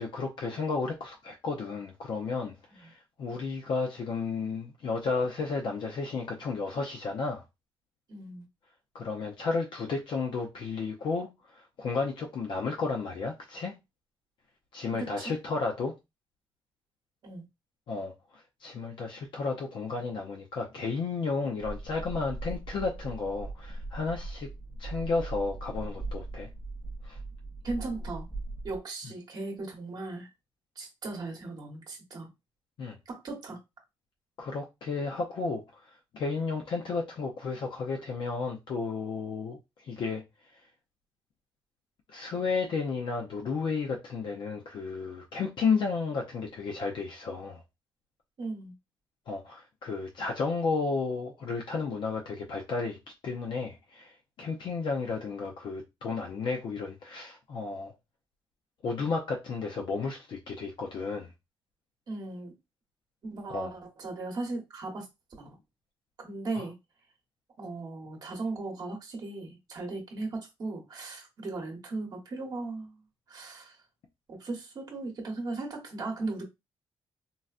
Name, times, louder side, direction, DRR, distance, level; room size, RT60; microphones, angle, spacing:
voice 1, 0.0-7.4 8.9-13.7 14.7-15.9 17.9-18.1 18.6-24.5 24.8-26.5 27.0-27.2 32.8-33.0 34.4-35.6 36.1-39.6 39.8-40.2 42.1-47.6 49.3-53.0 53.2-57.9 58.8-61.3 63.5-63.7 66.5-66.6, left 4 dB, 60° left, 0.6 m, -32 dB
voice 2, 8.1-8.4 14.9-15.4 17.2-17.4 27.6-28.3 28.6-30.3 30.8-32.3 33.1-33.6 48.4-48.7 62.1-62.5 63.2-65.1 65.4-65.6 66.2-66.8 67.6-72.9 73.3-73.8 74.3-76.4, right 3 dB, 45° right, 1.0 m, -37 dB
sound 1, 21.6-28.8, right 2 dB, 15° right, 0.7 m, -39 dB
3.9 x 2.1 x 2.4 m
cardioid pair, 155°, 10 cm